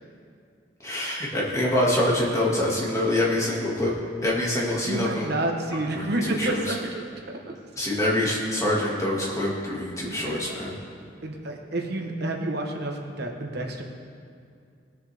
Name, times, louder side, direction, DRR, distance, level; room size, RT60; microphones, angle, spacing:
voice 1, 0.8-3.9 4.2-5.3 5.9-6.7 7.8-10.7, left 1 dB, 15° left, -5 dB, 2.1 m, -25 dB
voice 2, 4.8-7.1 7.5-7.6 10.0-10.6 11.2-13.8, right 2 dB, 60° right, 2 dB, 1.1 m, -29 dB
20.5 x 7.0 x 3.5 m, 2.3 s
head